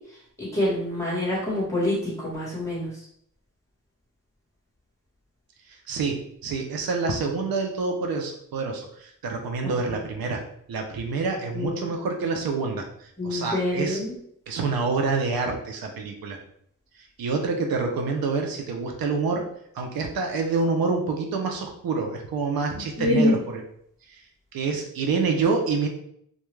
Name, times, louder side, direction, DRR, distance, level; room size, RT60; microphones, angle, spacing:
voice 1, 0.4-2.9 9.6-9.8 11.5-11.9 13.2-14.1 22.7-23.3, left 1 dB, 10° left, -7 dB, 1.1 m, -26 dB
voice 2, 5.9-10.4 10.7-14.0 14.5-16.4 17.0-19.4 19.7-23.6 24.1-24.2 24.5-25.9, right 4 dB, 85° right, 3 dB, 0.5 m, -27 dB
2.2 x 2.2 x 3.1 m, 0.68 s
wide cardioid pair, 140°, 35 cm